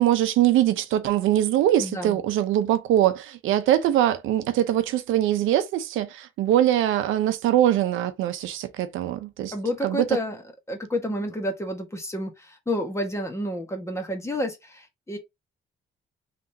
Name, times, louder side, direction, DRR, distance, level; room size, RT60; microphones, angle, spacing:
voice 1, 0.0-9.5 9.8-10.2, right 12 dB, 90° right, 0.7 m, -22 dB
voice 2, 1.8-2.2 9.5-10.4 10.7-15.2, equal, 15° left, 1.4 m, -30 dB
3.8 x 3.4 x 2.7 m
cardioid pair, 90°, 20 cm